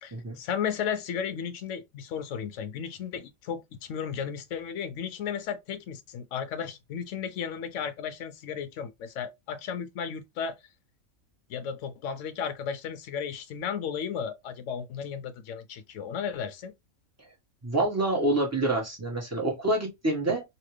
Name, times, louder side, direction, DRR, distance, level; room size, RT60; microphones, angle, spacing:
voice 1, 0.0-10.6 11.5-16.7, left 7 dB, 70° left, 0.9 m, -34 dB
voice 2, 17.6-20.4, right 2 dB, 10° right, 1.1 m, -27 dB
2.9 x 2.9 x 3.1 m
omnidirectional pair, 1.4 m